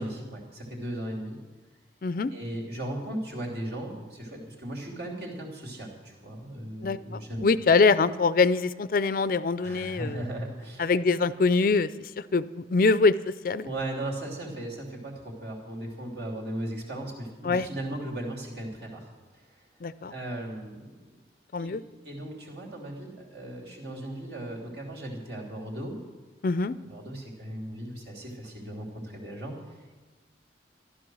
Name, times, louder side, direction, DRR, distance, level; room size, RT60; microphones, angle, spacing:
voice 1, 0.0-1.4 2.3-7.5 9.6-11.0 13.6-19.1 20.1-21.0 21.6-21.7 22.0-26.0 26.9-29.5, right 1 dB, 65° right, -1 dB, 3.2 m, -37 dB
voice 2, 6.8-10.2 10.8-11.9 12.3-13.1 13.4-13.7 17.4-17.7 19.8-20.1 21.5-21.8 26.4-26.8, left 4 dB, 50° left, 15 dB, 0.4 m, -24 dB
14.0 x 12.0 x 6.3 m, 1.3 s
head